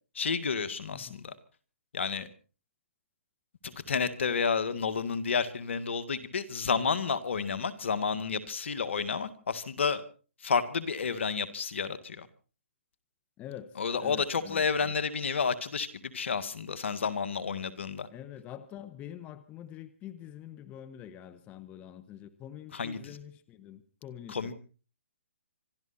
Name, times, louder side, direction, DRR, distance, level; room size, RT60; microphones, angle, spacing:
voice 1, 0.2-1.3 1.9-2.3 3.6-10.0 10.4-12.3 13.8-18.1 22.7-23.2 24.3-24.5, left 5 dB, 70° left, 12 dB, 2.0 m, -31 dB
voice 2, 13.4-14.9 18.1-24.5, left 10 dB, 20° left, 11 dB, 1.3 m, -46 dB
26.0 x 13.0 x 4.4 m, 0.38 s
hypercardioid pair, 145°, 7 cm